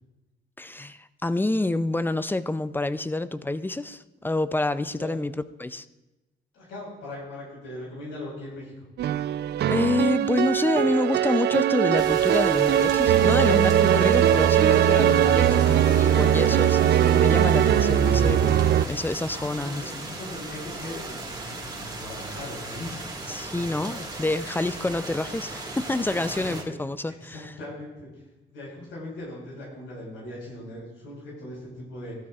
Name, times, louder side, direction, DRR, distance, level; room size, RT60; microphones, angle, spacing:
voice 1, 0.6-5.3 5.6-5.9 9.7-20.1 23.3-27.5, left 2 dB, 10° left, 14 dB, 0.4 m, -28 dB
voice 2, 4.7-5.2 6.5-8.9 15.1-16.4 19.3-23.1 23.4-24.0 26.0-26.8 27.0-32.2, left 1 dB, 90° left, -4 dB, 4.6 m, -40 dB
sound 1, 9.0-18.8, right 10 dB, 55° right, 0.4 m, -20 dB
sound 2, 12.0-26.6, right 2 dB, 20° right, 1.7 m, -37 dB
15.5 x 12.5 x 2.4 m, 1.0 s
cardioid pair, 90°, 20 cm